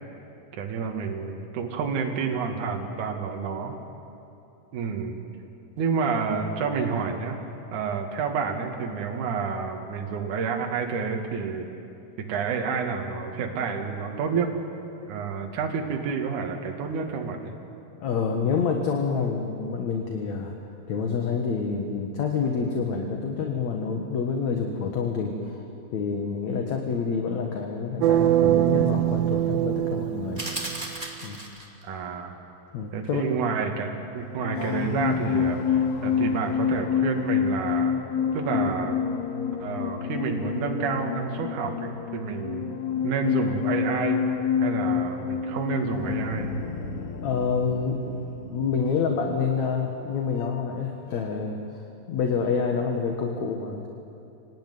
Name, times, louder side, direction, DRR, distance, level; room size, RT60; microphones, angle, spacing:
voice 1, 0.5-3.8 4.7-5.2 5.8-7.4 7.7-11.7 12.3-14.5 15.0-17.5 31.8-32.4 32.9-37.9 38.3-39.0 39.6-42.7 43.0-44.2 44.6-46.5, right 5 dB, 55° right, 2 dB, 3.2 m, -29 dB
voice 2, 18.0-20.5 20.9-25.7 25.9-30.5 31.2-31.4 32.7-33.3 47.2-48.1 48.5-51.6 52.1-53.9, left 5 dB, 55° left, 2 dB, 2.4 m, -27 dB
sound 1, 28.0-31.1, right 13 dB, 80° right, 2.5 m, -23 dB
sound 2, 30.4-31.8, right 1 dB, 15° right, 1.9 m, -35 dB
sound 3, 34.2-50.9 51.1-51.4, left 7 dB, 85° left, 3.4 m, -28 dB
26.0 x 18.5 x 9.6 m, 2.8 s
omnidirectional pair, 4.5 m